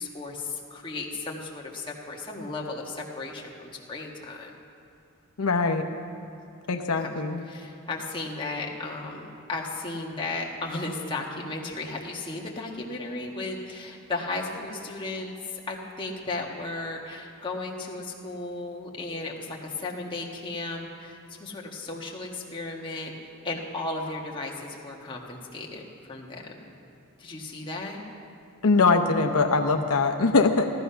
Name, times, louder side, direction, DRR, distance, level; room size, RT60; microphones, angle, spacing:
voice 1, 0.0-4.5 7.0-7.1 7.4-23.1 23.4-25.8 26.1-26.7 27.2-28.0, left 2 dB, 20° left, -2 dB, 1.4 m, -35 dB
voice 2, 5.4-5.9 6.7-7.4 28.6-30.6, left 3 dB, 80° left, 5 dB, 0.7 m, -22 dB
14.5 x 13.5 x 5.7 m, 2.5 s
head